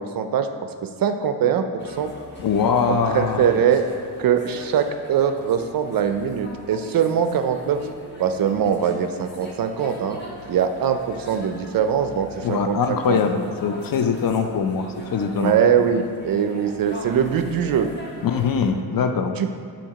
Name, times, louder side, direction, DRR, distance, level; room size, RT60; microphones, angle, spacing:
voice 1, 0.0-2.1 2.9-3.8 4.2-7.9 8.2-10.2 10.5-13.2 15.4-17.9 19.4-19.5, right 8 dB, 45° right, 7 dB, 0.5 m, -22 dB
sound 1, 1.8-18.7, equal, 20° left, 1.5 m, -41 dB
voice 2, 2.4-3.5 12.4-15.6 15.9-16.0 18.2-19.4, left 6 dB, 45° left, 6 dB, 0.6 m, -22 dB
7.0 x 2.9 x 5.7 m, 2.2 s
supercardioid pair, 55°, 48 cm